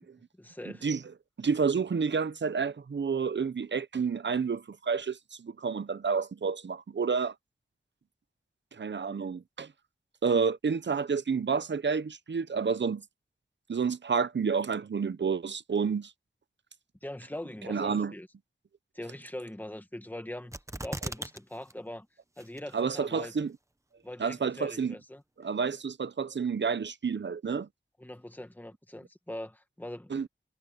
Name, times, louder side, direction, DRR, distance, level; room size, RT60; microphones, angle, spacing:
voice 1, 0.4-0.9 17.0-18.3 18.9-22.1 22.4-23.3 24.0-25.2 28.0-30.1, left 1 dB, 10° left, 1.8 m, -42 dB
voice 2, 1.4-7.3 8.8-9.7 10.2-13.0 13.7-16.1 17.7-18.1 22.7-23.5 24.2-24.9 25.4-27.7 30.1-30.3, right 5 dB, 65° right, 0.7 m, -29 dB
sound 1, 20.5-21.4 21.7-21.8 22.4-22.8 23.4-23.5, right 1 dB, 15° right, 1.0 m, -37 dB
wide cardioid pair, 85°, 20 cm